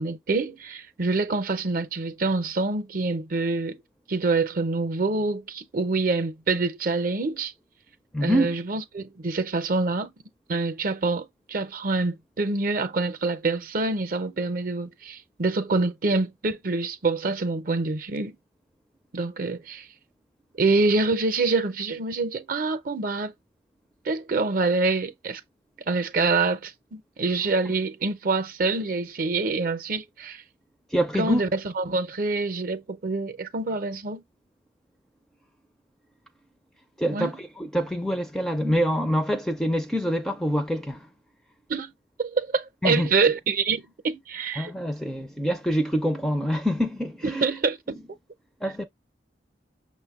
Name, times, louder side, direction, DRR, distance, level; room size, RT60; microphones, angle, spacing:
voice 1, 0.0-3.8 4.1-7.5 8.2-10.1 10.5-18.4 19.1-19.9 20.6-23.3 24.1-25.4 25.9-30.4 31.2-34.2 37.1-37.3 41.7-41.9 42.2-44.7 47.3-47.8, right 3 dB, 50° right, 0.6 m, -26 dB
voice 2, 8.1-8.6 27.6-27.7 30.9-31.4 37.0-41.1 42.8-43.1 44.6-47.5 48.6-48.8, equal, ahead, 0.4 m, -25 dB
6.2 x 2.2 x 3.5 m
head